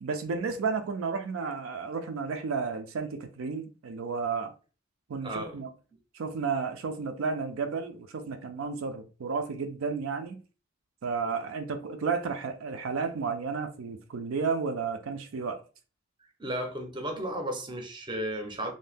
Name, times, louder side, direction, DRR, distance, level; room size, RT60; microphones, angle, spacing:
voice 1, 0.0-4.5 5.1-5.7 6.1-10.4 11.0-15.6, right 5 dB, 75° right, 0.4 m, -32 dB
voice 2, 5.2-5.6 16.4-18.7, right 1 dB, 20° right, 0.6 m, -34 dB
2.6 x 2.1 x 3.3 m
head